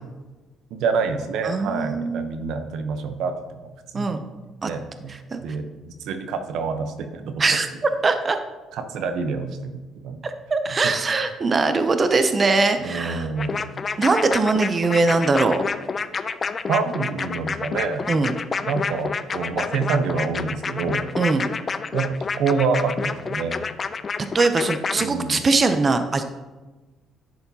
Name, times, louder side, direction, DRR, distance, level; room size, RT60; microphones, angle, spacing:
voice 1, 0.7-3.6 3.9-4.2 4.7-7.4 8.7-9.8 10.0-10.2 10.7-10.8 12.8-13.6 16.7-18.0 18.7-21.1 21.9-23.6 25.0-25.4, right 4 dB, 75° right, 8 dB, 0.8 m, -27 dB
voice 2, 1.4-2.5 3.9-4.2 4.6-4.7 5.1-5.4 7.4-8.4 10.2-13.3 14.0-15.6 18.1-18.3 21.2-21.5 24.3-26.2, right 3 dB, 30° right, 8 dB, 0.5 m, -21 dB
sound 1, 13.4-25.1, left 5 dB, 35° left, 0.4 m, -28 dB
10.5 x 6.9 x 2.8 m, 1.2 s
cardioid pair, 105°, 0 cm